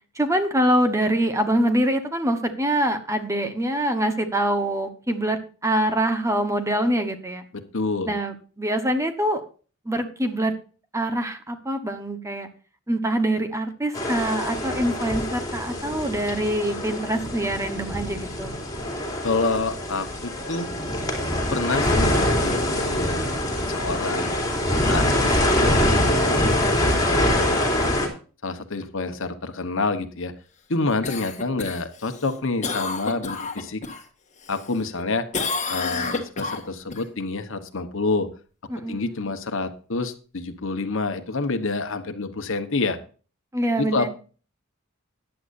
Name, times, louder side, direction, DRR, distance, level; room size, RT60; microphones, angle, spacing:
voice 1, 0.1-7.4 8.1-9.4 9.8-10.5 10.9-12.5 12.9-18.6 38.7-39.2 43.5-44.1, right 1 dB, 15° right, 8 dB, 1.1 m, -24 dB
voice 2, 7.5-8.1 19.2-20.7 21.5-23.3 23.7-24.3 24.9-26.5 26.8-27.6 28.4-30.3 30.7-33.8 34.5-35.3 35.7-38.3 38.7-43.0 43.8-44.1, left 3 dB, 65° left, 9 dB, 1.1 m, -28 dB
sound 1, 13.9-28.1, left 1 dB, 20° left, 3.0 m, -24 dB
Cough, 31.0-34.0 34.4-35.0 35.3-37.0 41.4-41.5, left 4 dB, 35° left, 1.5 m, -30 dB
15.0 x 10.0 x 2.6 m, 0.37 s
head